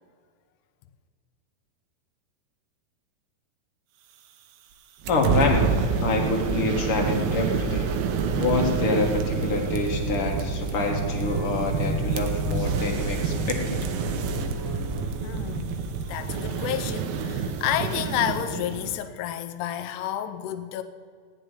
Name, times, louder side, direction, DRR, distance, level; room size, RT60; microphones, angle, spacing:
sound 1, 5.0-19.0, right 5 dB, 75° right, 2.6 m, -28 dB
voice 1, 5.1-5.7 6.0-7.9 8.4-13.8, left 3 dB, 50° left, 1.8 m, -26 dB
sound 2, 10.2-10.5 10.8-12.0 12.2-12.9 13.2-15.1, right 1 dB, 30° right, 2.0 m, -34 dB
voice 2, 12.7-13.2 15.2-20.8, left 11 dB, 80° left, 1.8 m, -31 dB
16.5 x 6.8 x 9.8 m
omnidirectional pair, 4.4 m